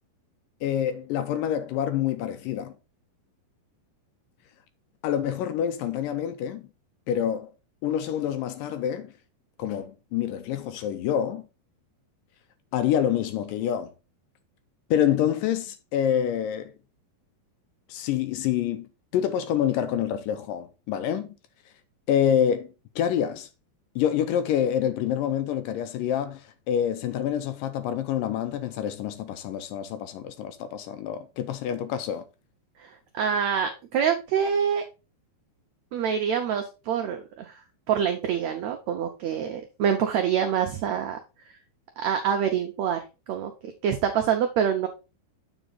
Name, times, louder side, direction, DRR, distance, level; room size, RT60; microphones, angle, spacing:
voice 1, 0.6-2.8 5.0-6.7 7.1-7.5 7.8-9.1 9.6-11.5 12.7-13.9 14.9-16.7 17.9-21.3 22.1-23.5 24.0-32.2, left 9 dB, 80° left, 2.1 m, -27 dB
voice 2, 32.8-34.8 35.9-37.6 37.9-41.2 42.0-43.0 43.3-44.9, right 8 dB, 90° right, 1.5 m, -26 dB
8.0 x 5.1 x 4.0 m
omnidirectional pair, 4.3 m